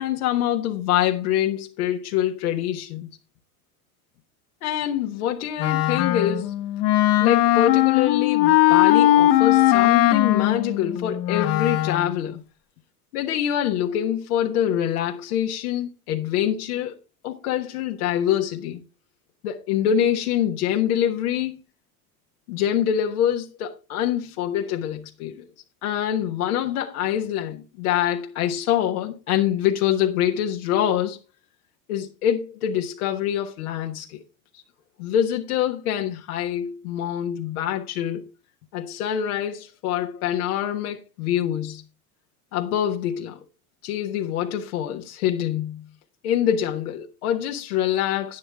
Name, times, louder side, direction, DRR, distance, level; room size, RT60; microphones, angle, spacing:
voice 1, 0.0-3.1 4.6-6.5 7.2-12.4 13.1-16.9 17.2-18.8 19.4-21.5 22.5-25.5 25.8-31.2 31.9-34.2 35.0-38.2 38.7-41.8 42.5-43.4 43.8-45.8 46.2-48.4, left 10 dB, 75° left, 1.5 m, -25 dB
Wind instrument woodwind instrument, 5.6-12.1, left 14 dB, 50° left, 1.4 m, -19 dB
11.0 x 9.0 x 3.6 m
hypercardioid pair, 90°, 44 cm